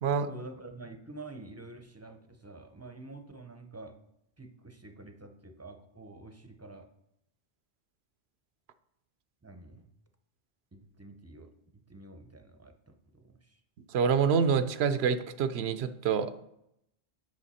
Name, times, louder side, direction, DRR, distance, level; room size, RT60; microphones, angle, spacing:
voice 1, 0.2-3.9 4.4-6.9 9.4-9.8 10.7-13.6, right 2 dB, 20° right, 6 dB, 0.5 m, -48 dB
voice 2, 13.9-16.4, right 6 dB, 85° right, 11 dB, 0.9 m, -27 dB
8.5 x 6.4 x 4.1 m, 0.79 s
omnidirectional pair, 1.0 m